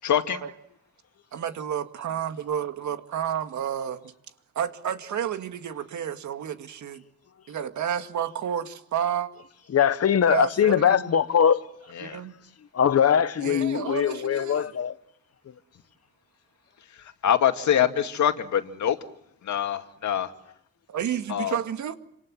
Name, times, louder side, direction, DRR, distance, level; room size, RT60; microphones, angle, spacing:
voice 1, 0.0-0.4 11.9-12.2 16.8-19.0 19.4-20.3 21.3-21.6, left 9 dB, 75° left, 2.4 m, -25 dB
voice 2, 1.3-4.1 4.6-7.0 7.5-9.3 10.3-11.1 12.0-12.3 13.4-14.7 20.9-22.0, right 9 dB, 80° right, 2.2 m, -30 dB
voice 3, 9.7-11.6 12.7-14.9, left 8 dB, 55° left, 1.4 m, -21 dB
28.0 x 26.5 x 7.7 m
cardioid pair, 115°, 29 cm